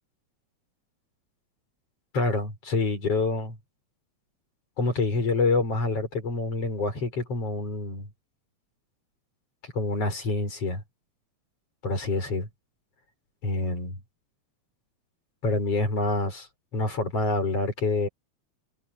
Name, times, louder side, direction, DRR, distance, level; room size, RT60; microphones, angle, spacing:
voice 1, 2.1-3.6 4.8-8.1 9.8-10.8 11.8-12.5 13.4-13.9 15.4-16.5 16.7-18.1, left 3 dB, 50° left, 7.5 m, -26 dB
omnidirectional pair, 3.4 m